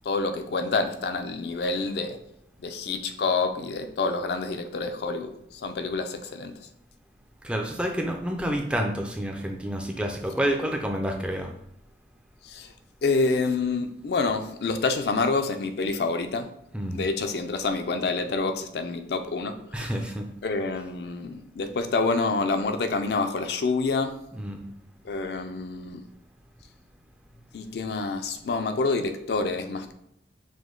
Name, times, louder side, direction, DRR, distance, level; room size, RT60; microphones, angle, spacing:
voice 1, 0.0-2.2 2.6-6.5 12.4-12.7 13.0-16.5 16.9-19.9 20.4-24.1 25.0-26.0 27.5-29.9, left 3 dB, 70° left, 7 dB, 0.4 m, -27 dB
voice 2, 7.4-11.5 16.7-17.1 19.7-20.3 24.3-24.6, equal, 5° right, 2 dB, 0.4 m, -29 dB
5.0 x 2.1 x 3.7 m, 0.79 s
head